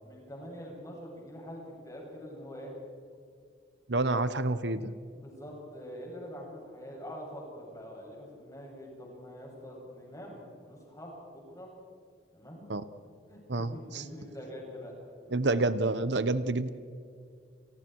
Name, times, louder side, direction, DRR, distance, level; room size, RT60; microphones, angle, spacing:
voice 1, 0.0-2.8 4.0-4.6 5.1-11.7 12.3-12.6 13.3-14.9, equal, 20° left, -2 dB, 8.0 m, -45 dB
voice 2, 3.9-4.9 12.7-12.8 13.5-14.0 15.3-16.7, right 2 dB, 75° right, 13 dB, 1.0 m, -28 dB
30.0 x 29.5 x 4.7 m, 2.2 s
head